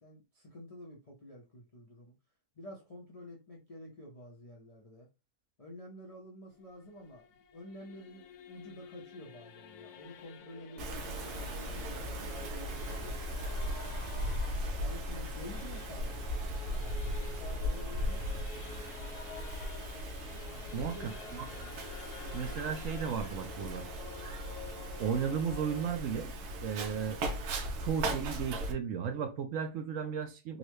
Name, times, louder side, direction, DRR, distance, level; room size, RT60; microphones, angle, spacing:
voice 1, 0.0-2.1 2.6-5.1 5.6-13.8 14.8-18.7 20.4-21.2, left 1 dB, 45° left, 0.4 m, -50 dB
Singing / Musical instrument, 6.5-25.9, left 7 dB, 85° left, 1.1 m, -50 dB
Wind, 10.8-28.7, equal, 85° right, 1.2 m, -38 dB
voice 2, 20.7-21.5 22.3-23.9 25.0-26.3 26.6-27.2 27.8-30.6, right 7 dB, 70° right, 0.9 m, -35 dB
3.8 x 2.1 x 3.0 m
omnidirectional pair, 1.6 m